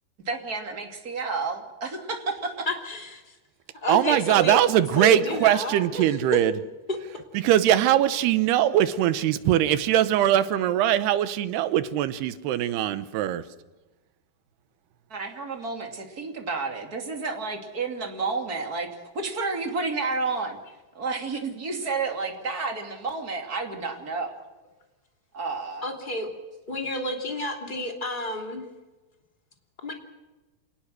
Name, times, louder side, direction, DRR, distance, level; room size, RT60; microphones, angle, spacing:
voice 1, 0.3-2.7 15.1-18.9 19.1-20.6 20.9-24.4 25.3-25.8, right 4 dB, 25° right, 3 dB, 2.5 m, -30 dB
voice 2, 2.7-3.0 3.8-4.6 5.0-6.1 6.9-7.0 25.8-26.3 26.7-28.6 29.8-29.9, left 1 dB, 15° left, 2 dB, 2.5 m, -30 dB
voice 3, 3.9-6.5 7.3-13.4, right 12 dB, 80° right, 12 dB, 3.0 m, -21 dB
28.5 x 18.5 x 6.4 m, 1.1 s
omnidirectional pair, 4.8 m